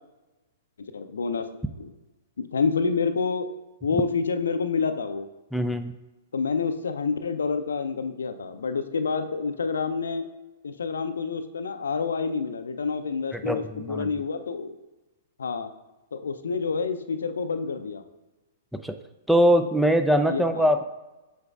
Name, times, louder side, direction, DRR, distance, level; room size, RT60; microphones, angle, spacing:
voice 1, 0.9-1.5 1.8-1.9 2.4-3.5 3.8-5.3 6.3-10.3 10.6-14.7 15.4-15.7 16.1-18.0 20.3-20.7, left 5 dB, 70° left, 9 dB, 0.5 m, -28 dB
voice 2, 5.5-5.9 13.3-14.1 18.8-19.0 19.3-20.8, equal, ahead, 7 dB, 0.4 m, -22 dB
8.0 x 5.3 x 2.4 m, 1.1 s
figure-of-eight pair, 110°, 0 cm